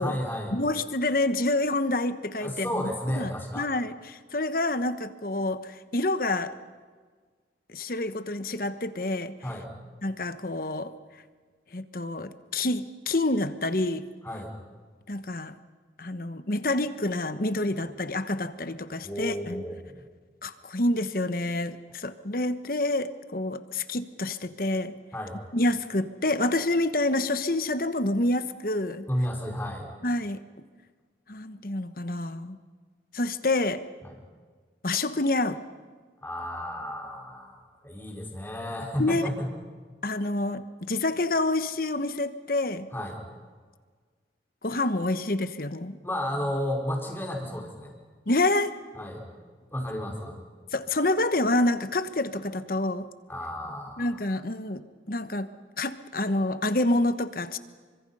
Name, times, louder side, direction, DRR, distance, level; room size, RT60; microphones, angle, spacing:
voice 1, 0.0-0.6 2.4-3.7 9.4-9.7 14.2-14.5 19.0-19.9 25.1-25.4 29.1-29.9 34.0-34.2 36.2-39.5 42.9-43.2 46.0-47.9 48.9-49.2 49.7-50.4 53.3-54.1, equal, 10° left, 1 dB, 4.5 m, -32 dB
voice 2, 0.5-2.8 3.1-6.5 7.7-9.3 10.0-10.9 11.7-14.1 15.1-15.6 16.0-19.6 20.4-25.0 25.5-29.1 30.0-30.4 31.3-32.6 33.1-33.8 34.8-35.6 39.0-39.3 40.0-42.9 44.6-46.0 48.3-48.8 50.7-53.1 54.0-55.5 55.8-57.6, left 2 dB, 50° left, 11 dB, 1.2 m, -28 dB
29.5 x 24.5 x 5.6 m, 1.5 s
head